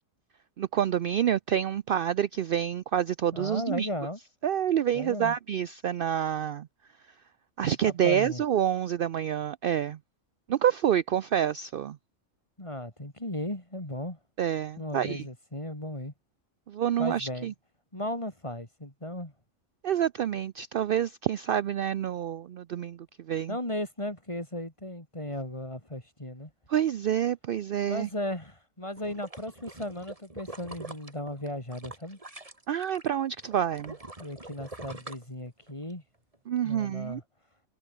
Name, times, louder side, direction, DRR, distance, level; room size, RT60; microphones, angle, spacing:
voice 1, 0.6-3.9 4.4-6.7 7.6-10.0 10.5-12.0 14.4-15.2 16.7-17.5 19.8-23.0 23.3-23.6 26.7-28.1 32.7-34.0 36.5-37.2, right 10 dB, 65° right, 0.5 m, -27 dB
voice 2, 3.3-4.2 4.9-5.4 7.6-8.4 12.6-14.2 14.8-16.1 17.0-17.5 17.9-19.3 23.5-26.5 27.9-32.2 34.2-36.0 36.6-37.2, left 1 dB, 20° left, 4.2 m, -36 dB
sound 1, 29.0-33.1 33.4-35.9 36.3-36.4, right 2 dB, 25° right, 2.7 m, -44 dB
omnidirectional pair, 1.5 m